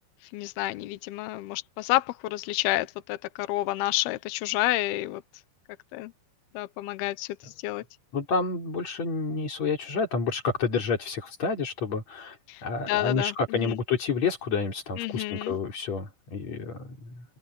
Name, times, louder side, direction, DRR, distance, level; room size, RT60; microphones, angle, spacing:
voice 1, 0.3-5.2 5.9-6.1 6.5-7.8 12.5-13.3 13.6-13.8 15.0-15.6, left 17 dB, 75° left, 2.4 m, -29 dB
voice 2, 8.1-12.4 12.6-17.2, left 4 dB, 40° left, 4.5 m, -29 dB
open air
omnidirectional pair, 5.4 m